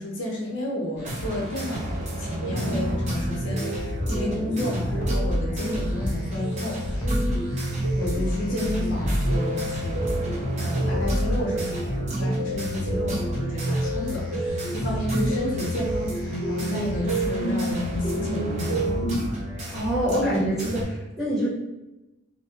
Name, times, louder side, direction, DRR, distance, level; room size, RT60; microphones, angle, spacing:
voice 1, 0.0-7.3 7.9-18.9, left 1 dB, 70° left, -2 dB, 0.6 m, -32 dB
sound 1, 1.0-20.8, equal, 35° right, 0.6 m, -32 dB
sound 2, 2.4-19.2, right 1 dB, 70° right, 1.5 m, -29 dB
sound 3, 4.0-4.2 5.0-5.4 6.0-6.2 7.0-7.4 8.0-8.2 9.0-9.4 10.0-10.2 11.0-11.4, equal, 15° left, 0.4 m, -27 dB
voice 2, 19.7-21.5, equal, 5° right, -11 dB, 1.2 m, -25 dB
2.6 x 2.2 x 2.8 m, 0.99 s
head